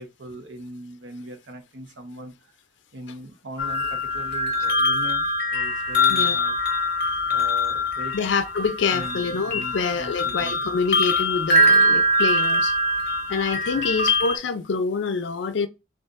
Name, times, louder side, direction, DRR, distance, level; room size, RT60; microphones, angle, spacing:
voice 1, 0.0-2.5 2.9-6.6 7.3-8.1 8.9-10.8 13.7-13.8, right 1 dB, 80° right, 0.8 m, -40 dB
sound 1, 3.6-14.4, left 1 dB, 55° left, 0.7 m, -23 dB
voice 2, 8.1-12.8 13.3-15.7, left 5 dB, 80° left, 0.4 m, -26 dB
6.3 x 2.4 x 2.4 m
head